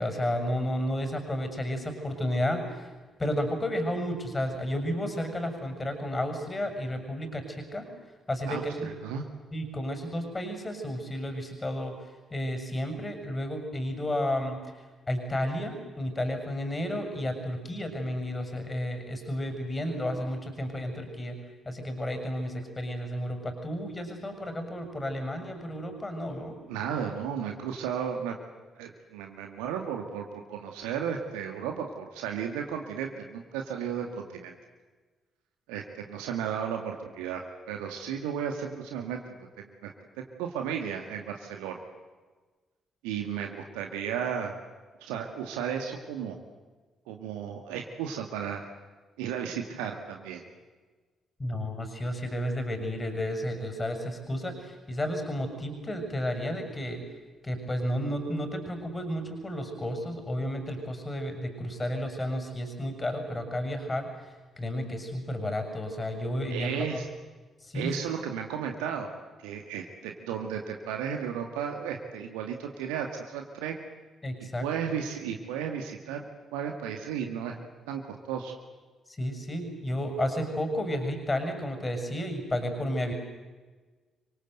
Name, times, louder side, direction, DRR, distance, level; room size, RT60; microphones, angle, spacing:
voice 1, 0.0-2.9 3.2-7.9 8.3-8.9 9.5-12.0 12.3-14.6 15.1-21.4 21.7-26.6 51.4-57.0 57.4-67.1 67.6-68.1 74.2-74.7 79.2-83.1, equal, 25° left, 7 dB, 7.1 m, -32 dB
voice 2, 8.5-9.2 26.7-28.4 28.8-34.5 35.7-39.9 40.2-41.8 43.0-44.5 45.0-46.4 47.1-48.7 49.2-50.4 66.5-67.1 67.7-69.1 69.4-73.8 74.6-77.6 77.9-78.0 78.3-78.6, right 8 dB, 70° right, 3 dB, 2.2 m, -34 dB
28.0 x 24.5 x 8.0 m, 1.3 s
figure-of-eight pair, 40°, 0 cm